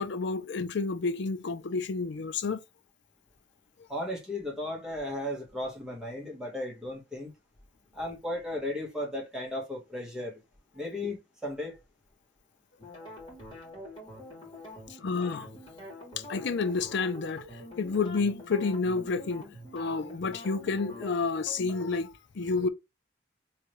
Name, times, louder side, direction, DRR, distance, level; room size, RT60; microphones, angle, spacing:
voice 1, 0.0-2.6 15.0-15.5 16.2-19.5 19.7-22.7, left 4 dB, 60° left, 0.5 m, -30 dB
voice 2, 3.9-7.3 7.9-10.4 10.7-11.2 11.4-11.8, left 1 dB, 5° right, 1.6 m, -35 dB
sound 1, 12.8-22.0, left 2 dB, 25° left, 2.5 m, -45 dB
3.6 x 3.2 x 3.1 m
head